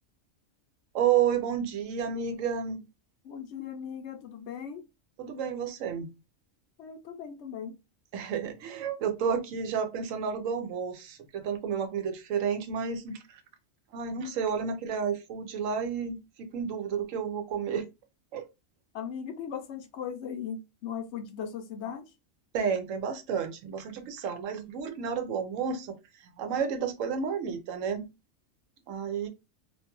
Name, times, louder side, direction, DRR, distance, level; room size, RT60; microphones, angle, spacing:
voice 1, 0.9-2.8 5.2-6.1 8.1-13.4 13.9-17.9 18.3-18.4 22.5-26.0 26.4-28.1 28.9-29.3, right 7 dB, 90° right, 1.0 m, -31 dB
voice 2, 3.2-4.9 6.8-7.8 18.9-22.1, left 7 dB, 70° left, 0.8 m, -38 dB
2.5 x 2.2 x 2.8 m
omnidirectional pair, 1.3 m